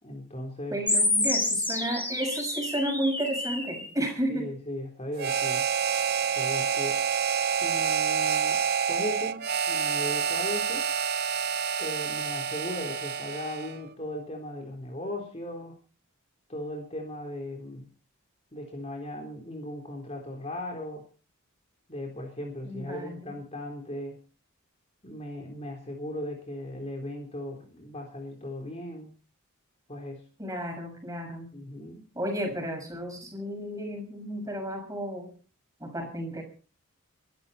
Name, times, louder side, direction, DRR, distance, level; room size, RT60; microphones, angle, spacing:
voice 1, 0.0-0.8 4.3-5.7 6.3-7.0 7.6-8.6 8.9-10.9 11.8-15.8 16.5-17.9 18.5-21.0 21.9-24.2 25.0-29.1 29.9-30.2 31.5-32.1 32.4-32.5, left 1 dB, 30° left, 1 dB, 3.7 m, -37 dB
voice 2, 0.7-4.5 22.6-23.4 30.4-31.5 32.1-35.3 35.8-36.4, right 1 dB, 15° right, 3 dB, 6.3 m, -32 dB
sound 1, 0.9-3.9, left 2 dB, 10° left, 4.3 m, -28 dB
Harmonica, 5.2-13.8, right 7 dB, 45° right, 0.7 m, -28 dB
24.0 x 12.5 x 4.3 m, 0.38 s
head